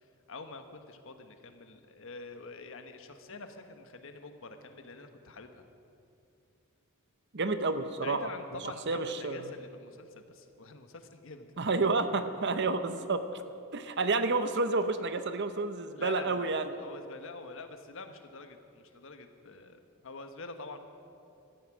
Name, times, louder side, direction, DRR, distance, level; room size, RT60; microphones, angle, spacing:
voice 1, 0.3-5.7 8.0-11.5 12.3-12.7 15.9-20.8, left 3 dB, 65° left, 7 dB, 1.2 m, -46 dB
voice 2, 7.3-8.2 8.9-9.5 11.6-13.2 13.7-16.7, right 3 dB, 55° right, 10 dB, 0.8 m, -30 dB
17.0 x 13.5 x 6.2 m, 2.6 s
head